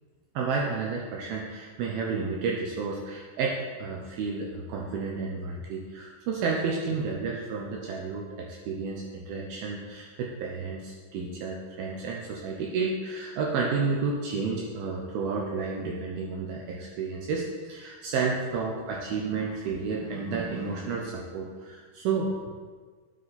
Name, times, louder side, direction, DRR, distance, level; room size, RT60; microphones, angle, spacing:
voice 1, 0.4-22.3, right 4 dB, 75° right, -1 dB, 2.6 m, -31 dB
9.8 x 8.2 x 4.2 m, 1.5 s
omnidirectional pair, 4.7 m